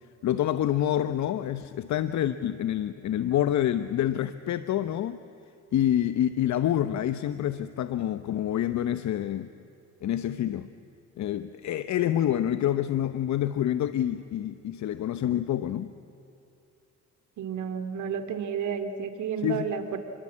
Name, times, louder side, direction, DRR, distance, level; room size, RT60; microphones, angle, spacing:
voice 1, 0.2-5.2 5.7-9.5 10.0-10.7 11.2-15.9 19.4-19.7, left 11 dB, 65° left, 12 dB, 0.9 m, -27 dB
voice 2, 17.4-20.0, right 7 dB, 75° right, 8 dB, 2.6 m, -31 dB
29.0 x 22.0 x 8.6 m, 2.8 s
cardioid pair, 90°, 30 cm